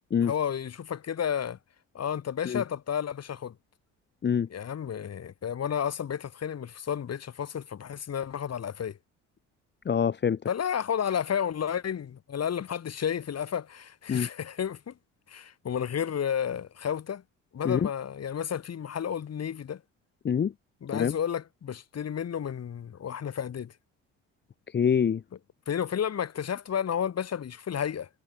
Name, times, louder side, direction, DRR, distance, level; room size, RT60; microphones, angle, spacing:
voice 1, 0.2-1.6 1.9-3.6 4.5-9.0 10.5-15.0 15.3-17.2 17.5-19.8 20.8-23.7 25.7-28.1, left 8 dB, 50° left, 6.5 m, -32 dB
voice 2, 9.9-10.4 14.1-14.3 17.6-17.8 20.2-20.5 20.9-21.1 24.7-25.2, left 7 dB, 35° left, 0.9 m, -25 dB
supercardioid pair, 70°, 33 cm